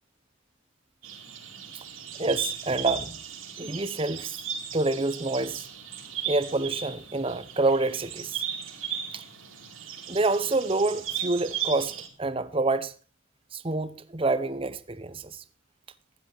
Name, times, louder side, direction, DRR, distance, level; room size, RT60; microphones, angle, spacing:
sound 1, 1.0-12.1, right 8 dB, 80° right, 4.3 m, -36 dB
voice 1, 2.2-3.2 3.6-4.4 4.7-5.7 6.3-8.4 9.1-9.2 10.1-12.9 13.5-15.4, right 2 dB, 25° right, 0.9 m, -27 dB
15.5 x 11.0 x 4.7 m
head